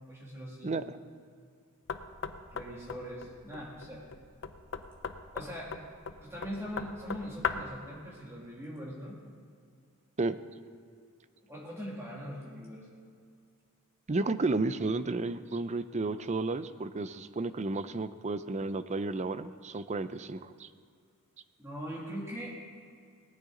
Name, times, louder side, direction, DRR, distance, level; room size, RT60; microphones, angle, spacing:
voice 1, 0.1-0.8 2.5-4.1 5.3-5.8 6.2-9.2 11.5-12.9 21.6-22.6, equal, 15° right, -4 dB, 2.2 m, -41 dB
Knock, 1.9-7.8, left 6 dB, 60° left, 0.7 m, -39 dB
voice 2, 14.1-20.7, right 3 dB, 30° right, 13 dB, 0.5 m, -32 dB
18.5 x 13.0 x 3.8 m, 2.3 s
head